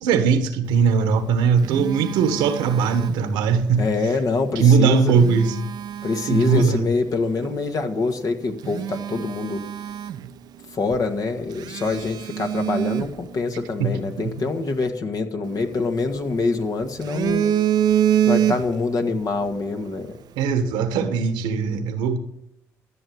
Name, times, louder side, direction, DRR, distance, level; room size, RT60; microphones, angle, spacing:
voice 1, 0.0-3.8 4.6-5.6 6.3-6.8 13.8-14.3 20.4-22.2, right 6 dB, 80° right, 1.4 m, -20 dB
Telephone, 1.1-3.7 4.9-6.8 7.4-7.6 8.1-8.2 8.6-10.6 10.9-11.0 11.5-13.9 15.5-16.4 16.8-19.0 19.3-19.5, right 10 dB, 65° right, 0.7 m, -26 dB
voice 2, 3.8-5.2 6.0-9.6 10.7-17.5 18.3-20.2, left 3 dB, 50° left, 1.9 m, -25 dB
13.5 x 7.2 x 8.4 m
hypercardioid pair, 55°, 8 cm